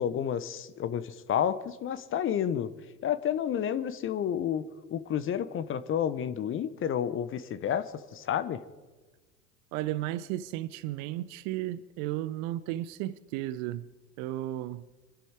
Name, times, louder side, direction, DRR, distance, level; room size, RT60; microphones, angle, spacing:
voice 1, 0.0-2.7 3.0-4.6 4.9-7.9 8.1-8.6, left 9 dB, 25° left, 1.0 m, -30 dB
voice 2, 9.7-13.9 14.2-14.8, right 14 dB, 40° right, 0.6 m, -34 dB
26.0 x 11.5 x 4.8 m
figure-of-eight pair, 80°, 48 cm